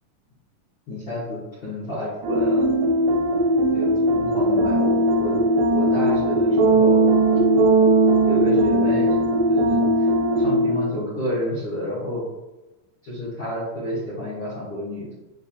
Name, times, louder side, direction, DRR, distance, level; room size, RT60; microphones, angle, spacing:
voice 1, 0.9-2.6 3.7-5.4 5.7-7.0 8.3-10.1 10.4-12.2 13.0-15.2, left 1 dB, 70° left, -10 dB, 1.1 m, -30 dB
sound 1, 2.2-11.0, right 1 dB, 85° right, 2.3 m, -19 dB
6.8 x 2.4 x 2.7 m, 1.1 s
omnidirectional pair, 4.0 m